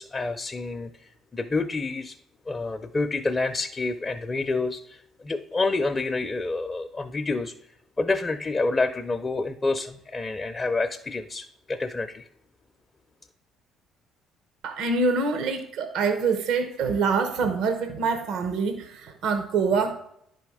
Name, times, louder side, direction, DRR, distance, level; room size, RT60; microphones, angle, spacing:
voice 1, 0.0-2.2 2.5-7.5 8.0-12.2, left 3 dB, 30° left, 5 dB, 0.6 m, -28 dB
voice 2, 14.6-19.9, right 4 dB, 75° right, 8 dB, 0.8 m, -25 dB
10.0 x 4.2 x 4.8 m, 0.72 s
supercardioid pair, 65°, 0 cm